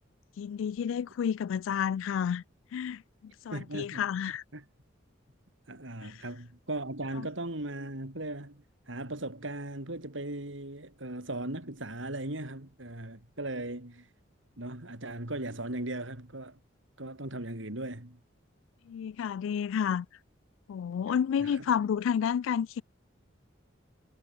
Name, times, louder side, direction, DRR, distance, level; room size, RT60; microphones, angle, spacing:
voice 1, 0.4-2.4 2.7-3.0 3.4-4.4 6.0-6.2 7.2-7.3 18.9-20.1 20.7-22.8, left 8 dB, 80° left, 0.3 m, -30 dB
voice 2, 3.5-4.1 4.5-4.6 5.7-14.1 14.6-16.6 17.0-18.2 21.4-21.7, right 1 dB, 75° right, 3.8 m, -38 dB
head